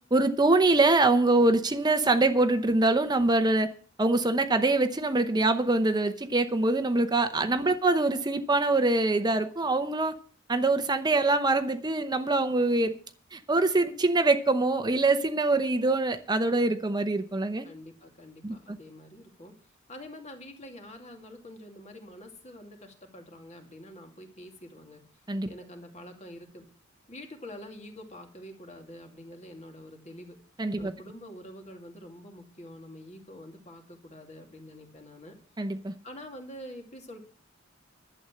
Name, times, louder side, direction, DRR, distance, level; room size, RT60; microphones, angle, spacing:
voice 1, 0.1-3.7 4.0-10.1 10.5-12.9 13.3-17.7 18.4-18.8 25.3-25.5 30.6-30.9 35.6-35.9, right 2 dB, 20° right, 9 dB, 0.8 m, -24 dB
voice 2, 17.6-19.5 19.9-25.0 25.5-26.7 27.1-30.4 30.8-35.4 36.0-37.2, left 1 dB, 35° left, 4 dB, 2.6 m, -46 dB
11.5 x 8.0 x 7.4 m, 0.42 s
head